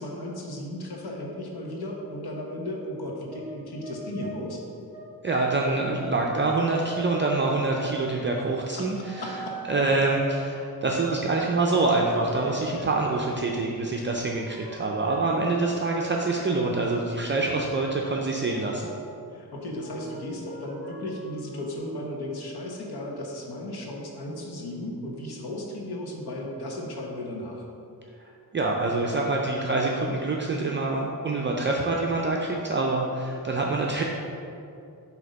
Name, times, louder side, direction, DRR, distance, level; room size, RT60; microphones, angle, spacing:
voice 1, 0.0-4.6 8.7-9.6 19.3-27.6, left 1 dB, 90° left, -1 dB, 1.1 m, -35 dB
sound 1, 3.3-3.6 3.8-4.4 4.9-8.3 9.0-13.2 14.2-16.3 16.7-16.9 17.3-19.3 19.7-21.8, right 1 dB, 20° left, 1.2 m, -41 dB
voice 2, 5.2-9.3 9.7-18.8 28.5-34.0, right 3 dB, 30° right, -1 dB, 0.4 m, -26 dB
7.6 x 2.9 x 5.2 m, 2.6 s
wide cardioid pair, 135°, 37 cm